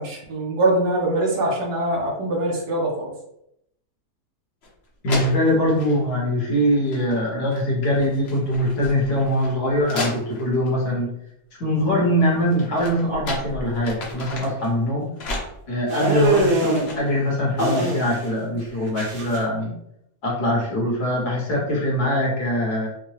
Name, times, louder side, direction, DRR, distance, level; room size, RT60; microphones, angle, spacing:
voice 1, 0.0-3.1, right 1 dB, 85° right, -2 dB, 1.6 m, -23 dB
sound 1, 4.6-4.7 5.1-6.0 6.8-7.2 7.5-10.7 12.2-14.7 15.2-17.2, left 2 dB, 50° left, 1.0 m, -34 dB
voice 2, 5.0-11.1 11.6-15.1 15.7-19.7 20.2-22.9, equal, 70° left, -3 dB, 1.9 m, -22 dB
sound 2, 15.9-16.9 17.6-18.3 18.6-19.4, right 1 dB, 45° right, 0.8 m, -23 dB
5.3 x 2.2 x 3.2 m, 0.78 s
omnidirectional pair, 1.7 m